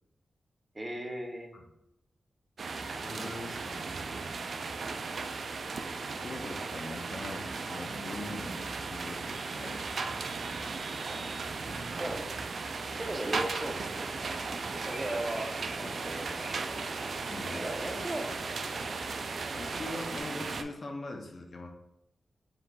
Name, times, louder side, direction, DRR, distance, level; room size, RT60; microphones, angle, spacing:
voice 1, 0.7-1.5 4.8-5.0 11.1-11.3 12.0-12.2 13.0-14.4 14.8-16.6 17.5-18.2 18.9-19.1, right 1 dB, 20° right, 1 dB, 0.7 m, -37 dB
sound 1, 2.6-20.6, right 4 dB, 60° right, 0.3 m, -36 dB
voice 2, 2.9-3.9 6.2-10.1 11.7-11.9 15.8-16.0 17.3-17.7 19.5-21.7, left 2 dB, 45° left, 3 dB, 0.6 m, -42 dB
sound 2, 13.1-20.2, right 1 dB, 40° right, 1.1 m, -46 dB
4.8 x 3.8 x 2.3 m, 0.85 s
wide cardioid pair, 145°, 0 cm